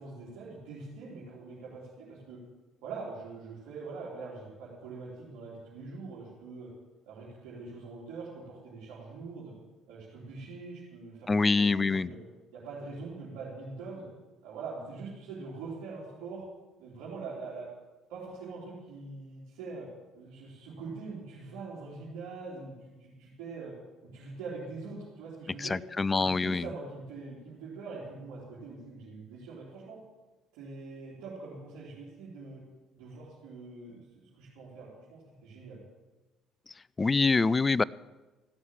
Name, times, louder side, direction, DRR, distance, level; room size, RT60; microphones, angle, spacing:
voice 1, 0.0-2.4 2.8-6.7 7.1-9.5 9.9-12.2 12.5-14.1 14.4-16.4 16.8-17.7 18.1-19.9 20.1-23.7 24.1-25.7 26.2-30.0 30.6-32.6 33.0-35.8, right 4 dB, 80° right, -8 dB, 3.4 m, -43 dB
voice 2, 11.3-12.1 25.6-26.6 37.0-37.8, left 4 dB, 25° left, 22 dB, 0.3 m, -25 dB
15.0 x 6.3 x 7.5 m, 1.2 s
supercardioid pair, 70°, 0 cm